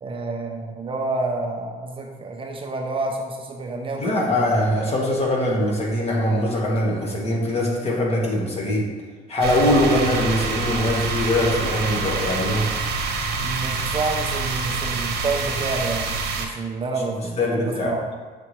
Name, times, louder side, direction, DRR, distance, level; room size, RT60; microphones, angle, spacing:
voice 1, 0.0-4.3 13.4-18.1, right 3 dB, 30° right, 2 dB, 0.6 m, -29 dB
voice 2, 4.0-8.9 9.3-12.7 17.4-17.9, left 1 dB, 35° left, -3 dB, 1.6 m, -22 dB
sound 1, 9.4-16.5, right 4 dB, 75° right, 1.0 m, -26 dB
6.9 x 4.2 x 3.3 m, 1.4 s
cardioid pair, 110°, 17 cm